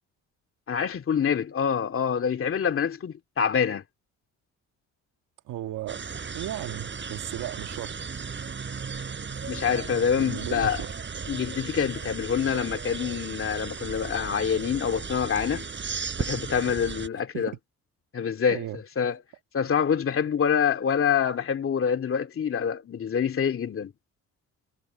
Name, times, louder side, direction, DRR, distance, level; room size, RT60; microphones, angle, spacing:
voice 1, 0.7-3.8 9.5-10.8 11.3-15.6 16.2-17.5 18.1-19.2 19.5-23.9, left 7 dB, 45° left, 2.3 m, -26 dB
voice 2, 5.5-6.0 6.3-8.0 10.2-10.9 17.3-17.6 18.5-18.8, right 14 dB, 85° right, 1.8 m, -35 dB
sound 1, 5.9-17.1, right 5 dB, 40° right, 5.9 m, -36 dB
cardioid pair, 90°, 30 cm